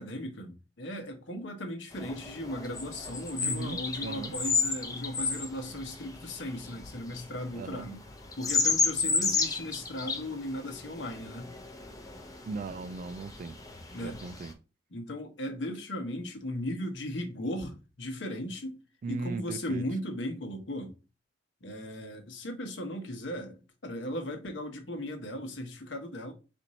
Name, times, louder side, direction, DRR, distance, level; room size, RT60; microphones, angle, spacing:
voice 1, 0.0-8.0 8.4-11.6 13.9-14.2 14.9-18.8 19.1-21.0 21.6-26.3, left 1 dB, 85° left, 1.0 m, -37 dB
sound 1, 1.9-14.5, left 4 dB, 20° left, 0.6 m, -33 dB
voice 2, 3.4-4.3 7.6-7.9 12.4-13.6 14.0-14.6 19.0-19.8, right 4 dB, 45° right, 0.3 m, -38 dB
4.3 x 2.6 x 4.1 m
head